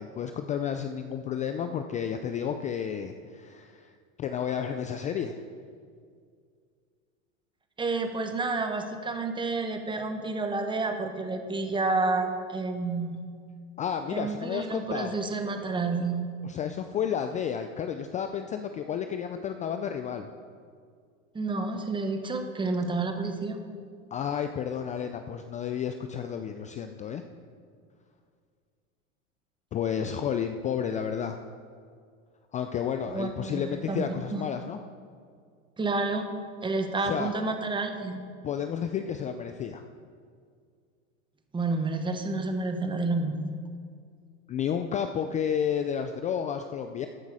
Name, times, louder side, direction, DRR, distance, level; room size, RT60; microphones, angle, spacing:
voice 1, 0.0-3.9 4.2-5.4 13.8-15.1 16.4-20.3 24.1-27.2 29.7-31.4 32.5-34.8 37.0-37.3 38.4-39.8 44.5-47.1, left 8 dB, 20° left, 7 dB, 0.3 m, -31 dB
voice 2, 7.8-13.2 14.1-16.3 21.3-23.6 33.1-34.5 35.8-36.3 36.6-38.2 41.5-43.4, right 3 dB, 10° right, 6 dB, 1.2 m, -30 dB
14.0 x 9.3 x 4.8 m, 2.1 s
hypercardioid pair, 105°, 42 cm